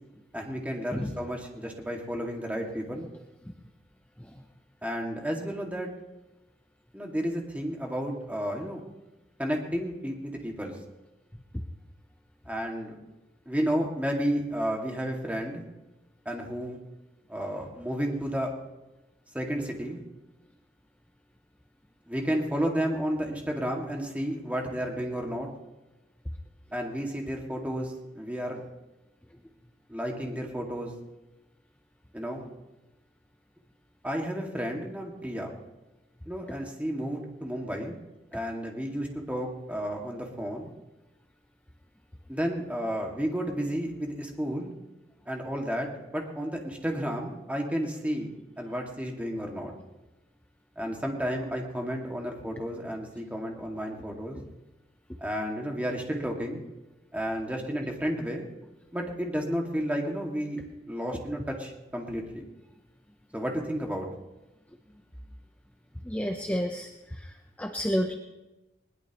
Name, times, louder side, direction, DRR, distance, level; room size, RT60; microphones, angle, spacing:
voice 1, 0.3-3.1 4.8-5.9 6.9-8.8 9.4-10.7 12.5-12.9 13.5-15.6 16.3-16.8 17.3-18.5 19.3-20.0 22.1-25.5 26.7-28.7 29.9-30.9 32.1-32.5 34.0-35.5 36.3-38.0 38.3-40.7 42.3-44.7 45.3-49.7 50.8-54.4 55.2-56.6 57.1-58.5 58.9-60.6 60.9-62.4 63.3-64.1, equal, 10° right, 0 dB, 2.1 m, -32 dB
voice 2, 66.0-66.9 67.6-68.1, equal, 10° left, 4 dB, 0.8 m, -29 dB
20.5 x 20.5 x 3.1 m, 1.0 s
head